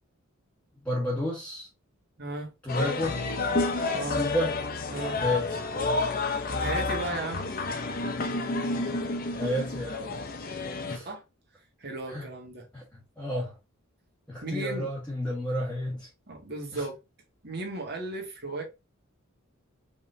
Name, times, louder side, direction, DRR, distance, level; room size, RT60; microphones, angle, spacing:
voice 1, 0.8-1.7 2.6-3.1 4.1-4.5 5.2-5.6 9.3-10.2 10.9-11.1 12.1-12.2 12.7-12.8 13.2-13.5 14.3-16.1 16.7-16.8, left 1 dB, 5° left, 1.3 m, -30 dB
voice 2, 2.2-2.5 3.9-4.2 4.9-5.2 6.6-7.5 11.0-11.2 11.8-12.7 14.4-14.9 16.3-17.0 17.4-18.6, right 2 dB, 50° right, 1.9 m, -35 dB
sound 1, 2.7-11.0, left 3 dB, 40° left, 0.7 m, -30 dB
5.2 x 3.6 x 2.6 m
head